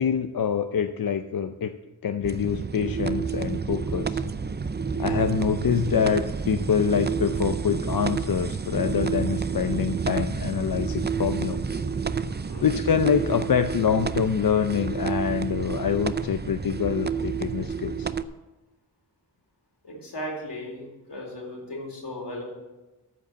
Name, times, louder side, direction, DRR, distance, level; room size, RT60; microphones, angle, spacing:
voice 1, 0.0-1.7 2.0-4.2 5.0-11.8 12.6-18.1, left 7 dB, 55° left, 8 dB, 0.6 m, -25 dB
sound 1, 2.2-18.2, right 5 dB, 25° right, 0.5 m, -29 dB
voice 2, 11.8-12.7 19.8-22.4, left 1 dB, 75° left, -2 dB, 4.3 m, -37 dB
13.5 x 5.1 x 8.1 m, 1.1 s
wide cardioid pair, 60°, 41 cm